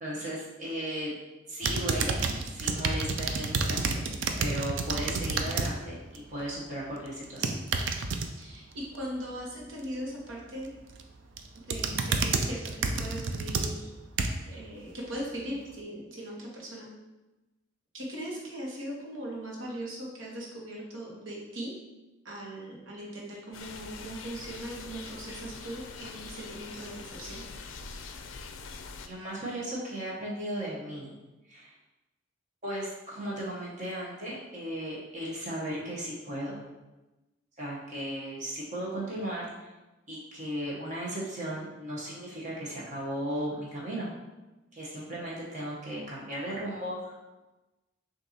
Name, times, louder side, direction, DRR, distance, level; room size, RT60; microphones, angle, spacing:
voice 1, 0.0-1.1 1.5-2.2 2.5-7.6 29.1-31.1 31.5-31.7 32.6-36.6 37.6-39.7 40.1-44.1 44.7-47.4, right 1 dB, 40° right, -6 dB, 1.0 m, -36 dB
sound 1, 1.6-5.7 6.1-6.4 7.2-8.3 10.6-11.0 11.4-14.5 15.1-15.2, right 4 dB, 70° right, 0.4 m, -29 dB
voice 2, 8.4-10.7 11.7-13.9 14.5-16.9 17.9-21.7 22.2-27.4, right 1 dB, 85° right, -3 dB, 1.2 m, -39 dB
sound 2, 23.5-29.1, left 4 dB, 75° left, 0.4 m, -43 dB
6.4 x 2.6 x 2.8 m, 1.1 s
head